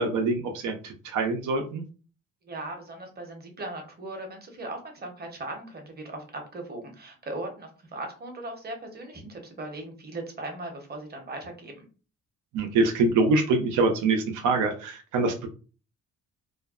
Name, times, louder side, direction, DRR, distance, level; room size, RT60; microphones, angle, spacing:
voice 1, 0.0-1.8 12.5-15.5, right 3 dB, 80° right, 4 dB, 0.6 m, -25 dB
voice 2, 2.4-11.8, right 2 dB, 30° right, 3 dB, 0.8 m, -38 dB
2.5 x 2.1 x 2.4 m, 0.36 s
cardioid pair, 90°, 30 cm